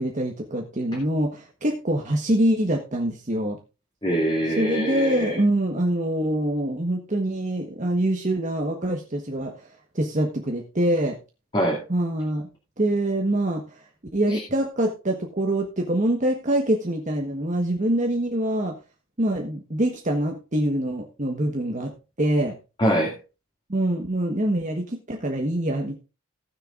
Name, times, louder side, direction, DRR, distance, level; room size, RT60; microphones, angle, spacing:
voice 1, 0.0-3.6 4.6-9.5 9.9-11.1 11.9-12.5 12.8-13.6 14.1-18.7 19.2-21.9 22.2-22.5 23.7-26.0, right 1 dB, 35° right, 1 dB, 1.2 m, -24 dB
voice 2, 4.0-5.4 11.5-11.8 14.3-14.4 22.8-23.1, right 1 dB, 25° left, -2 dB, 2.2 m, -23 dB
18.0 x 6.7 x 2.5 m, 0.31 s
head